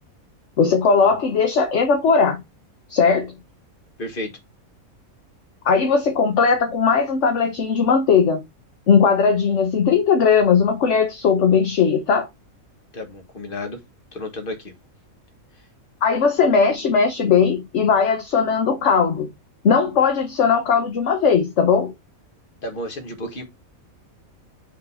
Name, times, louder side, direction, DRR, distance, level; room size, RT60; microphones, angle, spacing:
voice 1, 0.6-2.4 2.9-3.3 5.6-8.4 8.9-12.3 16.0-19.3 19.6-21.9, left 5 dB, 60° left, 1.2 m, -18 dB
voice 2, 4.0-4.3 12.9-13.8 14.1-14.7 22.6-23.4, left 1 dB, 40° left, 1.8 m, -32 dB
5.2 x 3.9 x 5.4 m
omnidirectional pair, 1.5 m